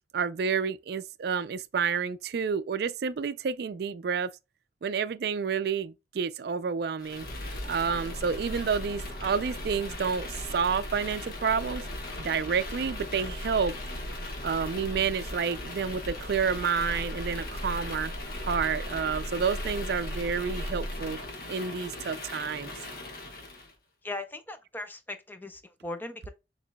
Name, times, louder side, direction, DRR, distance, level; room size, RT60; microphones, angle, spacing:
voice 1, 0.1-4.3 4.8-7.3 7.6-11.8 12.2-13.8 14.4-18.1 18.4-21.2 21.5-22.7, right 6 dB, 60° right, 0.4 m, -29 dB
sound 1, 7.0-23.7, left 1 dB, 55° left, 1.1 m, -37 dB
voice 2, 24.0-26.3, left 2 dB, 10° left, 0.6 m, -38 dB
6.6 x 3.0 x 2.2 m
head